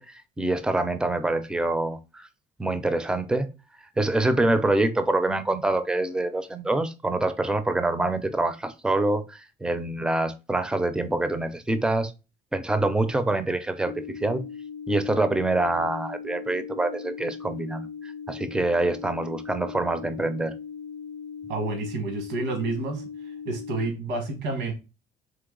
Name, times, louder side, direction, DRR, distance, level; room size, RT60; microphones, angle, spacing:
voice 1, 0.0-2.3 2.6-3.5 3.8-12.1 12.5-14.4 14.9-20.5, right 2 dB, 5° right, 0.5 m, -26 dB
sound 1, 13.9-23.9, left 6 dB, 80° left, 0.5 m, -39 dB
voice 2, 21.5-23.0 23.4-24.7, right 3 dB, 85° right, 1.4 m, -29 dB
3.9 x 3.1 x 3.7 m
cardioid pair, 115°, 17 cm